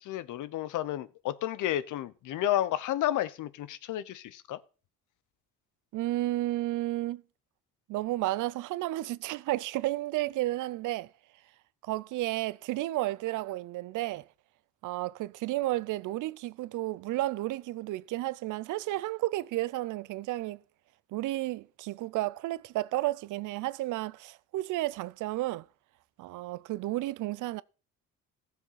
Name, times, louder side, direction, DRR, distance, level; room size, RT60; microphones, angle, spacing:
voice 1, 0.0-4.6, left 13 dB, 80° left, 0.9 m, -31 dB
voice 2, 5.9-7.2 7.9-11.1 11.8-14.2 14.8-20.6 21.1-25.6 26.2-27.6, right 17 dB, 85° right, 0.6 m, -32 dB
15.0 x 7.1 x 5.7 m
cardioid pair, 90°, 30 cm